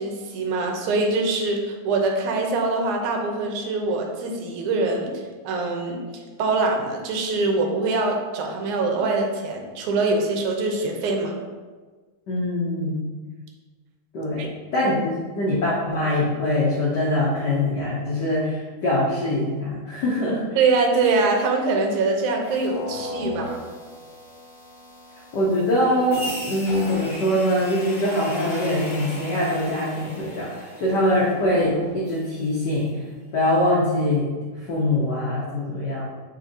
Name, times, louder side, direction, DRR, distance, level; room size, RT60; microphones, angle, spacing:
voice 1, 0.0-6.0 6.4-11.3 14.4-14.5 20.6-23.6, right 3 dB, 85° right, 2 dB, 2.3 m, -23 dB
voice 2, 12.3-13.0 14.1-20.4 25.3-32.9 33.3-34.3 34.7-36.1, left 1 dB, 75° left, -6 dB, 0.9 m, -23 dB
sound 1, 22.4-32.5, left 1 dB, 45° left, 0.8 m, -37 dB
8.3 x 4.8 x 2.8 m, 1.4 s
omnidirectional pair, 3.4 m